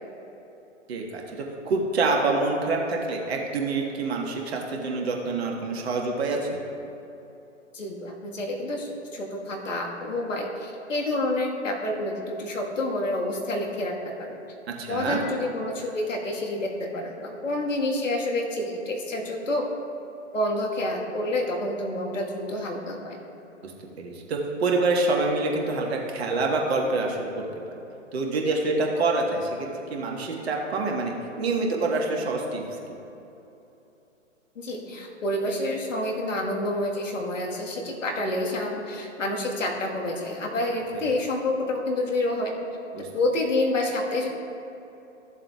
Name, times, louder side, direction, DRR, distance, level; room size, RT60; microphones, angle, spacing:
voice 1, 0.9-6.6 14.8-15.2 23.6-23.7 24.0-27.3 28.1-32.6 40.9-41.1 42.9-43.1, right 3 dB, 55° right, 0 dB, 1.5 m, -26 dB
voice 2, 7.7-14.4 14.9-19.7 20.3-23.2 34.5-42.5 43.1-44.3, left 1 dB, 75° left, 0 dB, 1.6 m, -28 dB
14.5 x 7.4 x 2.4 m, 3.0 s
figure-of-eight pair, 130°, 38 cm